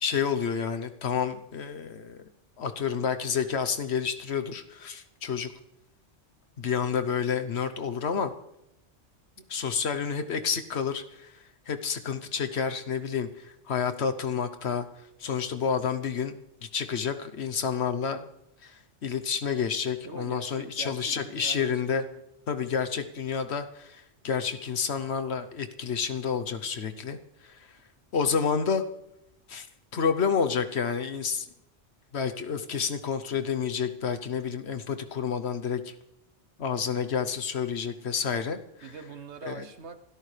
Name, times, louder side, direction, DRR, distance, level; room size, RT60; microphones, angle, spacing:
voice 1, 0.0-2.2 2.6-5.5 6.6-8.3 9.5-11.3 11.7-14.9 15.2-16.4 16.7-18.3 18.6-22.0 22.5-27.2 27.4-27.7 28.1-28.8 29.5-29.7 29.9-31.5 32.1-35.9 36.6-38.9 39.4-39.7, left 6 dB, 65° left, 9 dB, 1.2 m, -29 dB
voice 2, 20.0-21.8 22.1-22.2 38.8-40.0, right 5 dB, 70° right, 9 dB, 1.3 m, -43 dB
27.5 x 13.0 x 3.3 m, 0.85 s
omnidirectional pair, 1.2 m